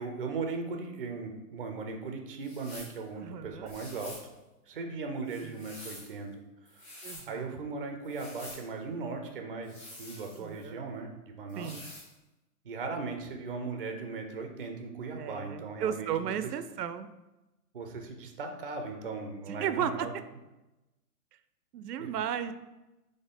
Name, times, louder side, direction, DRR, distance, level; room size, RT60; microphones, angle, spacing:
voice 1, 0.0-4.2 4.7-6.3 6.7-6.9 7.3-11.7 12.6-16.3 17.7-20.1 22.0-22.1, right 4 dB, 40° right, 4 dB, 0.4 m, -38 dB
sound 1, 2.4-3.0 3.6-4.3 5.2-6.1 6.6-7.3 8.0-8.6 9.6-10.7 11.5-12.1, left 1 dB, 15° left, 1.0 m, -47 dB
voice 2, 3.1-3.7 5.4-5.6 7.0-7.6 10.3-10.9 11.6-11.8 15.2-17.1 19.5-20.1 21.7-22.5, right 9 dB, 90° right, 12 dB, 0.5 m, -35 dB
4.3 x 3.2 x 3.5 m, 1.0 s
hypercardioid pair, 165°, 46 cm